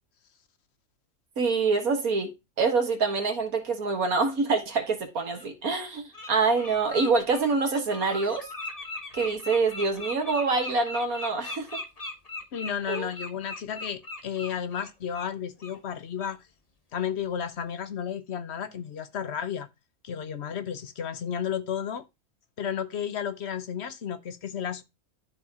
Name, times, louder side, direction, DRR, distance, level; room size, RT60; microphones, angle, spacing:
voice 1, 1.4-2.3 2.6-8.5 9.1-11.8 12.9-13.1, right 4 dB, 75° right, 2.1 m, -26 dB
Bird, 4.5-4.6 5.3-5.5 5.9-6.3 6.6-15.3 15.6-15.8 16.2-16.4, left 2 dB, 25° left, 1.5 m, -39 dB
voice 2, 12.5-16.4 16.9-19.7 20.0-22.0 22.6-24.8, left 8 dB, 50° left, 1.1 m, -32 dB
12.5 x 4.5 x 3.7 m
omnidirectional pair, 1.5 m